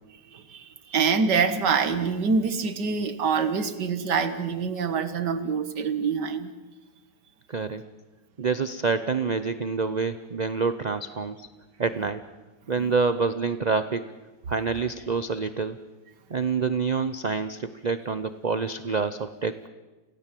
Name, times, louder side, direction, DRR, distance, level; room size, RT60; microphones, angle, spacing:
voice 1, 0.3-6.5, right 5 dB, 75° right, 11 dB, 2.1 m, -25 dB
voice 2, 7.5-7.8 8.4-11.5 11.8-12.2 12.7-14.1 14.5-15.8 16.3-19.7, right 4 dB, 55° right, 12 dB, 0.4 m, -27 dB
28.5 x 17.5 x 7.6 m, 1.2 s
omnidirectional pair, 1.9 m